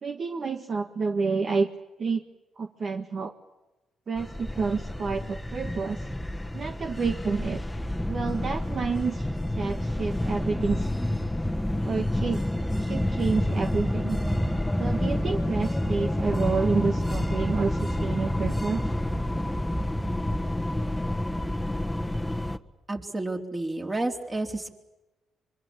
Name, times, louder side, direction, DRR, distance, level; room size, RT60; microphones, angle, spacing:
voice 1, 0.0-1.7 2.0-2.2 2.6-3.3 4.1-6.0 6.5-7.6 8.0-9.3 9.6-10.9 11.8-12.4 12.8-14.2 14.8-18.8, right 4 dB, 50° right, 5 dB, 1.7 m, -29 dB
sound 1, 4.2-22.6, left 1 dB, 10° left, 1.5 m, -28 dB
voice 2, 22.9-24.7, right 2 dB, 25° right, 2 dB, 4.4 m, -30 dB
25.0 x 23.5 x 8.6 m, 1.0 s
supercardioid pair, 55°, 0 cm